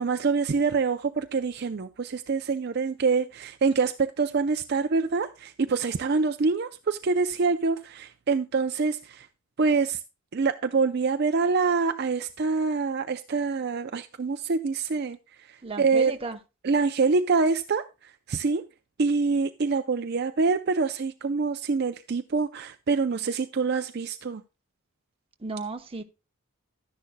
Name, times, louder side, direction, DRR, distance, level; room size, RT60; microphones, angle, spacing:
voice 1, 0.0-9.3 9.6-10.0 10.3-16.1 16.6-18.6 19.0-24.4, right 4 dB, 50° right, 0.5 m, -26 dB
voice 2, 15.6-16.4 25.4-26.0, right 3 dB, 25° right, 0.8 m, -34 dB
12.5 x 10.5 x 2.2 m
head